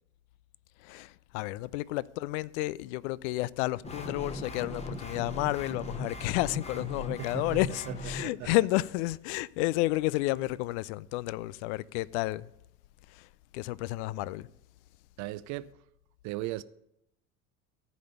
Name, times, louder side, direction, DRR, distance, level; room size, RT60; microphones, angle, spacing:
voice 1, 0.8-12.5 13.1-13.3 13.5-14.5, left 18 dB, 55° left, 0.5 m, -31 dB
sound 1, 3.8-8.2, left 1 dB, 15° left, 1.2 m, -39 dB
voice 2, 15.2-15.7 16.2-16.6, right 17 dB, 40° right, 0.6 m, -36 dB
14.5 x 5.2 x 6.7 m
hypercardioid pair, 80°, 43 cm